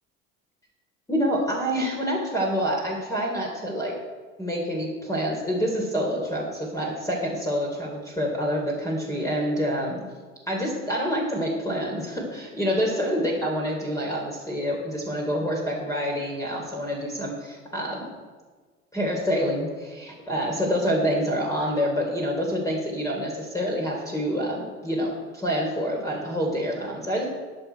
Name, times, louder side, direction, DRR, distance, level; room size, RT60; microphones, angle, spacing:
voice 1, 1.1-3.9 4.4-10.0 10.5-18.1 18.9-27.3, equal, 10° left, -2 dB, 3.2 m, -27 dB
20.5 x 7.2 x 4.6 m, 1.5 s
figure-of-eight pair, 75°, 39 cm